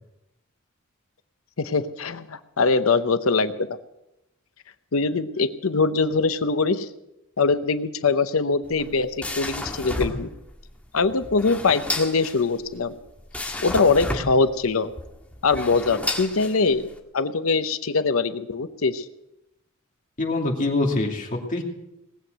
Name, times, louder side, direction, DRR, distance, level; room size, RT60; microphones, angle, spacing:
voice 1, 1.6-3.8 4.9-6.9 7.4-10.3 10.9-12.9 13.6-14.9 15.4-16.9 17.1-19.1, left 4 dB, 75° left, 11 dB, 0.8 m, -22 dB
sound 1, 8.6-17.0, left 1 dB, 5° left, 1.7 m, -32 dB
voice 2, 20.2-21.6, left 2 dB, 40° left, 0 dB, 2.7 m, -24 dB
19.0 x 8.0 x 7.8 m, 0.89 s
head